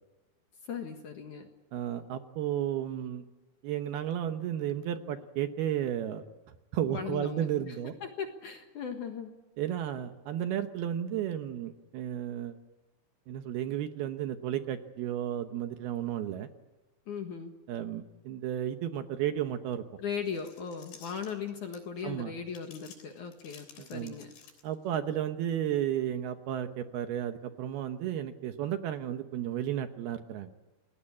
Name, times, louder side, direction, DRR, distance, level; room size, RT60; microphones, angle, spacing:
voice 1, 0.7-1.5 6.9-7.7 8.0-9.3 17.1-17.5 20.0-24.3, left 6 dB, 55° left, 5 dB, 2.4 m, -38 dB
voice 2, 1.7-3.2 3.6-6.3 6.7-7.9 9.6-12.6 13.3-16.5 17.7-19.8 22.0-22.3 23.8-24.1 24.6-30.5, right 10 dB, 70° right, 8 dB, 2.7 m, -33 dB
sound 1, 20.1-22.0 22.5-24.9, left 6 dB, 75° left, 5.6 m, -54 dB
28.0 x 20.5 x 8.5 m, 1.1 s
omnidirectional pair, 5.2 m